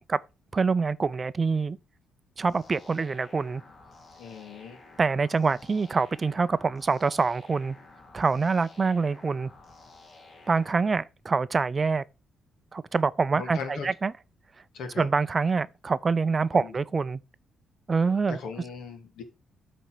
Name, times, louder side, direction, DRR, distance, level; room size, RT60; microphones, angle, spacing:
voice 1, 0.5-1.8 2.4-3.6 5.0-7.8 8.1-9.5 10.5-12.0 12.7-14.1 15.0-17.2 17.9-18.4, right 4 dB, 30° right, 0.5 m, -25 dB
sound 1, 2.4-11.0, left 3 dB, 40° left, 3.0 m, -52 dB
voice 2, 4.2-4.8 13.3-13.9 14.7-15.1 16.5-16.7 18.3-19.2, left 5 dB, 75° left, 2.2 m, -38 dB
8.2 x 4.3 x 6.1 m
cardioid pair, 90°, 0 cm